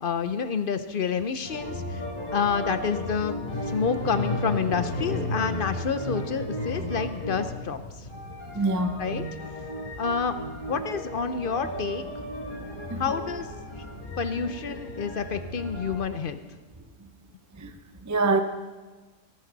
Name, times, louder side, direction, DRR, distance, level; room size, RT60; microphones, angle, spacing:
voice 1, 0.0-2.0 2.3-3.3 3.6-7.8 9.0-9.2 10.0-10.4 10.7-12.0 13.0-13.5 14.2-16.4, left 6 dB, 60° left, 10 dB, 0.5 m, -28 dB
sound 1, 1.4-16.0, left 1 dB, 30° left, 3.6 m, -34 dB
voice 2, 8.5-9.0 12.9-13.0 14.0-14.1 17.0-17.1 17.5-17.8 18.0-18.4, right 3 dB, 15° right, 6 dB, 0.6 m, -26 dB
18.5 x 14.5 x 4.0 m, 1.3 s
omnidirectional pair, 1.7 m